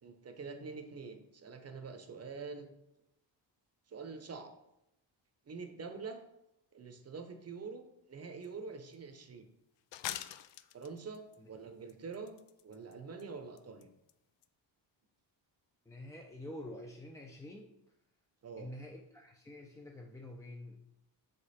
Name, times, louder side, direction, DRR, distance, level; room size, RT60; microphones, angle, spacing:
voice 1, 0.0-2.7 3.9-4.5 5.5-6.2 6.7-9.5 10.7-13.9 18.4-18.7, right 4 dB, 35° right, 7 dB, 0.8 m, -46 dB
sound 1, 8.4-8.5 8.9-9.0 9.9-11.4 11.9-12.9 13.2-13.3 13.6-13.8 14.1-14.2 14.4-14.5, left 12 dB, 70° left, 0.5 m, -43 dB
voice 2, 15.9-17.7 18.6-20.8, left 1 dB, 5° left, 0 dB, 0.4 m, -47 dB
7.0 x 5.1 x 4.2 m, 0.83 s
wide cardioid pair, 155°, 45 cm